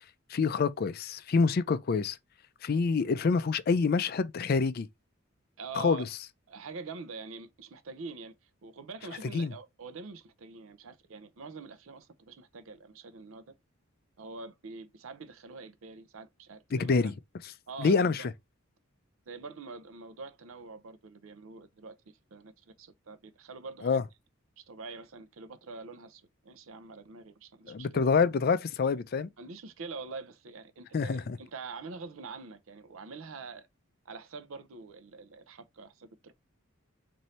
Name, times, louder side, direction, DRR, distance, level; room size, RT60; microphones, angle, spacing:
voice 1, 0.3-2.2 2.6-4.9 5.8-6.1 9.3-9.5 16.7-17.1 17.8-18.2 23.8-24.0 27.7-29.3 30.9-31.4, left 4 dB, 45° left, 0.4 m, -26 dB
voice 2, 5.6-6.0 6.5-8.3 8.6-13.5 14.2-16.9 17.7-18.3 19.3-22.0 22.3-24.0 24.6-27.9 29.4-33.7 34.1-36.3, right 4 dB, 70° right, 0.6 m, -45 dB
4.2 x 2.7 x 3.0 m
head